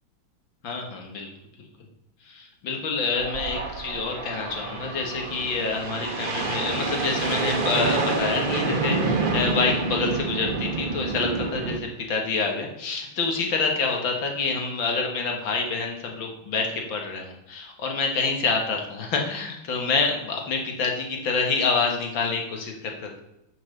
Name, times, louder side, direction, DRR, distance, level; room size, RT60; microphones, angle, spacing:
voice 1, 0.6-1.3 2.3-23.2, left 4 dB, 90° left, 2 dB, 2.4 m, -27 dB
sound 1, 3.2-11.8, right 3 dB, 35° right, 1.0 m, -28 dB
9.9 x 5.9 x 6.7 m, 0.85 s
omnidirectional pair, 2.0 m